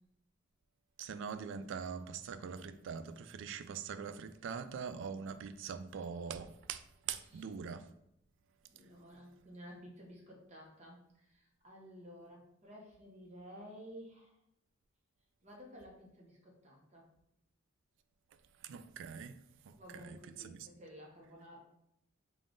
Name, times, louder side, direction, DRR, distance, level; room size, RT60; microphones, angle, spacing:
voice 1, 1.0-7.8 18.6-19.3 19.7-20.2 20.4-20.7, right 6 dB, 65° right, 0.3 m, -43 dB
voice 2, 7.3-7.9 8.7-14.3 15.4-17.1 19.8-21.6, equal, 35° right, 0.9 m, -53 dB
3.6 x 2.4 x 3.7 m
head